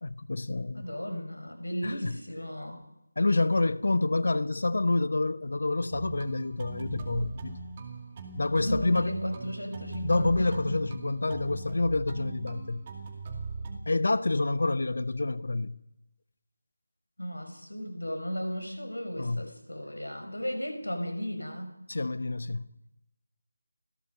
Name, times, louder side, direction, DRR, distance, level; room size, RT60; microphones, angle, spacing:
voice 1, 0.0-0.9 1.8-2.2 3.2-7.6 8.4-9.1 10.0-12.9 13.9-15.8 19.2-19.5 21.9-22.7, left 2 dB, 50° left, 1.1 m, -28 dB
voice 2, 0.7-2.8 8.6-10.8 17.2-21.8, equal, 75° left, 6.0 m, -35 dB
sound 1, 5.9-13.8, right 4 dB, 20° right, 2.4 m, -40 dB
30.0 x 18.5 x 5.4 m
figure-of-eight pair, 165°, 0 cm